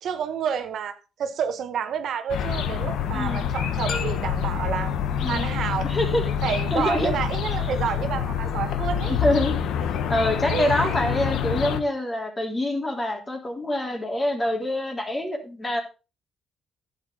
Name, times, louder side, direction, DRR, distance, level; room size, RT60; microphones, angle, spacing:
voice 1, 0.0-4.9 5.2-5.9 6.4-9.2 10.5-11.0, right 8 dB, 70° right, 1.1 m, -29 dB
sound 1, 2.3-11.8, left 8 dB, 80° left, 1.1 m, -26 dB
voice 2, 3.1-3.5 5.2-5.5 5.8-6.3 6.7-7.2 9.1-9.6 10.1-15.8, left 1 dB, 25° left, 3.4 m, -26 dB
sound 2, 3.9-5.9, left 2 dB, 50° left, 2.3 m, -39 dB
11.0 x 8.2 x 3.8 m
cardioid pair, 90°, 0 cm